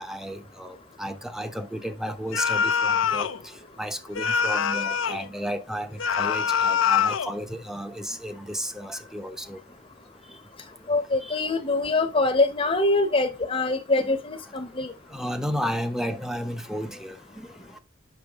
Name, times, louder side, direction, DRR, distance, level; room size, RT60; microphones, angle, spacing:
voice 1, 0.0-3.3 3.8-9.6 11.2-11.4 14.0-14.1 15.1-17.5, equal, 5° right, 0.8 m, -33 dB
sound 1, 2.3-3.4 4.1-5.3 6.0-7.3, left 7 dB, 85° left, 0.6 m, -24 dB
voice 2, 10.9-14.9, left 2 dB, 30° left, 0.9 m, -24 dB
7.1 x 5.7 x 3.6 m
head